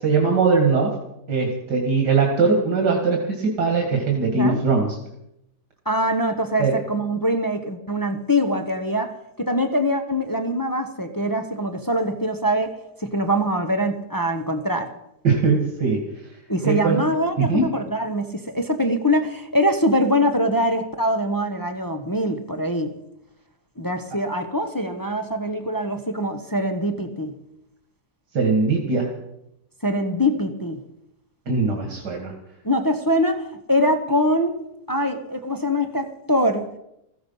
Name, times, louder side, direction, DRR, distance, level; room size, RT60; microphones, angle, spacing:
voice 1, 0.0-0.9 1.3-5.0 6.6-6.8 15.2-16.1 16.6-17.0 17.4-17.7 28.3-29.1 31.5-32.3, right 4 dB, 80° right, 1 dB, 2.6 m, -20 dB
voice 2, 5.9-9.1 9.4-12.7 13.0-14.9 16.5-22.9 23.8-27.3 29.8-30.8 32.6-34.5 34.9-36.7, equal, 15° left, 5 dB, 0.8 m, -23 dB
15.5 x 15.0 x 5.6 m, 0.83 s
omnidirectional pair, 1.8 m